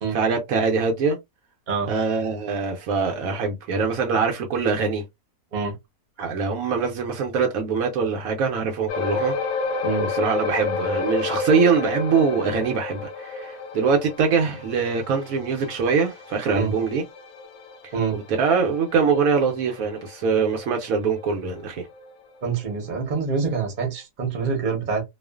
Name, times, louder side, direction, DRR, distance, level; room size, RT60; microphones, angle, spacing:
voice 1, 0.1-1.2 1.9-5.0 6.2-9.4 10.0-17.0 17.8-21.9, right 5 dB, 70° right, 1.0 m, -23 dB
sound 1, 8.9-21.6 21.9-22.1 22.7-22.8, left 4 dB, 75° left, 1.0 m, -31 dB
voice 2, 22.4-25.0, right 5 dB, 40° right, 0.8 m, -26 dB
2.4 x 2.3 x 2.3 m
omnidirectional pair, 1.6 m